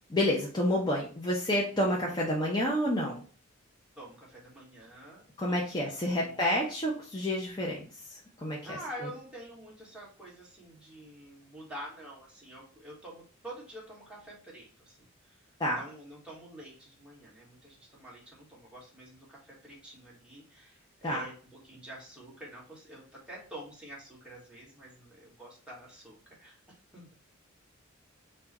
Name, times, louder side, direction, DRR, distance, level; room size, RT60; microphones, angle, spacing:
voice 1, 0.1-3.2 5.4-8.8 15.6-15.8 21.0-21.2, left 1 dB, 20° left, -4 dB, 0.7 m, -29 dB
voice 2, 3.9-6.4 8.6-15.0 15.7-26.6 26.9-27.1, right 1 dB, 5° right, -5 dB, 1.6 m, -47 dB
4.6 x 2.5 x 4.1 m, 0.40 s
head